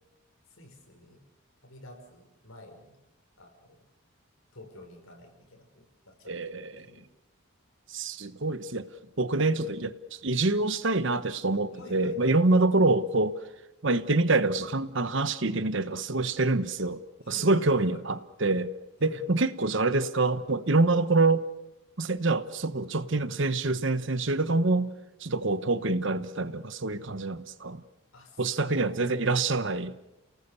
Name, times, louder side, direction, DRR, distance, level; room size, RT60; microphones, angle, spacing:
voice 1, 0.5-1.2 1.6-3.0 3.4-3.8 4.5-7.1 11.7-12.4 17.2-18.0 19.0-19.2 28.1-29.4, left 1 dB, 75° left, 5.5 m, -49 dB
voice 2, 6.3-6.9 7.9-8.9 9.2-13.3 13.8-17.0 17.3-18.7 19.0-21.4 22.0-24.9 25.2-27.8 28.4-29.9, right 3 dB, 60° right, 1.1 m, -26 dB
29.5 x 19.0 x 7.0 m
head